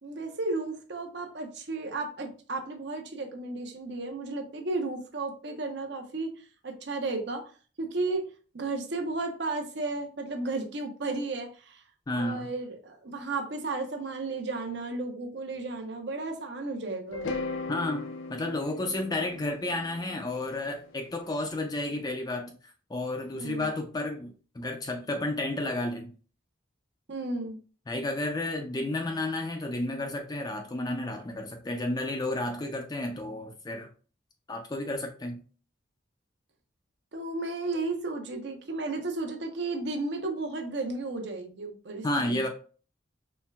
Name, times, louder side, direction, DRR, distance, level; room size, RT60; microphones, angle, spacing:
voice 1, 0.0-7.5 7.8-8.3 8.5-11.8 12.1-17.3 23.3-23.7 27.1-27.6 37.1-42.5, right 3 dB, 60° right, 4 dB, 0.7 m, -34 dB
voice 2, 12.1-12.5 17.7-22.6 22.9-26.1 27.9-33.9 34.5-35.4 42.0-42.5, left 2 dB, 20° left, 3 dB, 0.4 m, -32 dB
sound 1, 17.1-21.3, left 3 dB, 85° left, 0.5 m, -38 dB
4.4 x 3.2 x 2.2 m, 0.39 s
head